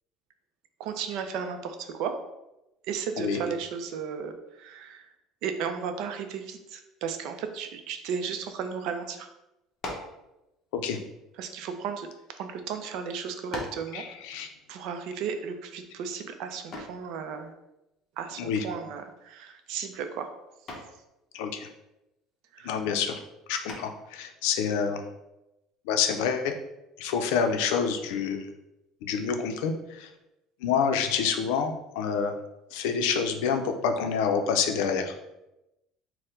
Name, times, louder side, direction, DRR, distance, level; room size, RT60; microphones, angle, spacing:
voice 1, 0.8-2.2 2.9-5.1 5.4-9.3 11.4-14.0 14.7-17.5 18.2-20.3 22.5-22.7, right 6 dB, 65° right, 7 dB, 0.4 m, -34 dB
sound 1, 9.8-10.2 11.1-12.3 13.0-13.1 13.5-13.9 16.7-17.1 19.0-19.3 19.7-20.1 20.7-21.0 23.7-24.1, left 2 dB, 30° left, 0.8 m, -39 dB
voice 2, 13.9-14.5 18.4-18.6 21.3-21.7 22.6-23.2 23.5-25.0 25.9-26.6 27.0-28.5 29.0-30.1 30.6-32.3 32.7-35.1, left 6 dB, 85° left, 6 dB, 0.5 m, -27 dB
4.4 x 2.1 x 3.7 m, 0.92 s
cardioid pair, 155°, 0 cm